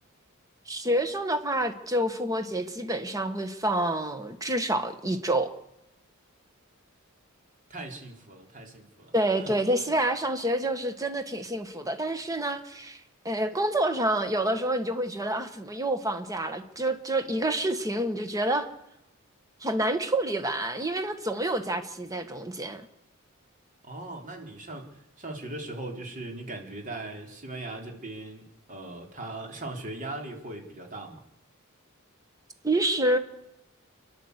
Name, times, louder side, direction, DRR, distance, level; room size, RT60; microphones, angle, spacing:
voice 1, 0.7-5.5 9.1-13.0 13.3-18.7 19.6-22.8 32.6-33.2, right 1 dB, 15° right, 1.6 m, -28 dB
voice 2, 7.7-9.5 23.8-28.4 28.7-31.2, right 2 dB, 40° right, 4.0 m, -39 dB
30.0 x 11.5 x 8.2 m
head